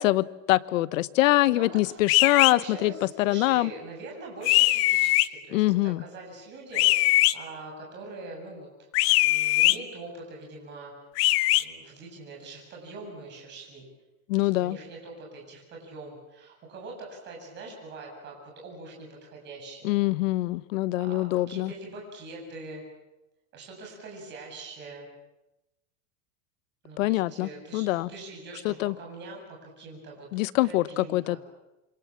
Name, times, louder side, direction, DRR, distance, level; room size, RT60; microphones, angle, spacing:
voice 1, 0.0-2.9 3.2-3.7 5.5-6.0 14.3-14.8 19.8-21.7 27.0-28.1 28.6-28.9 30.3-31.4, left 18 dB, 75° left, 17 dB, 1.1 m, -24 dB
voice 2, 1.4-8.9 9.2-10.9 11.5-13.9 14.4-20.0 20.9-22.8 23.5-25.1 26.8-30.3 30.6-31.4, right 3 dB, 25° right, 0 dB, 7.4 m, -43 dB
sound 1, 2.1-2.5 4.5-5.3 6.7-7.3 8.9-9.8 11.2-11.6, left 18 dB, 50° left, 1.0 m, -21 dB
27.0 x 25.5 x 7.4 m, 0.97 s
supercardioid pair, 175°, 40 cm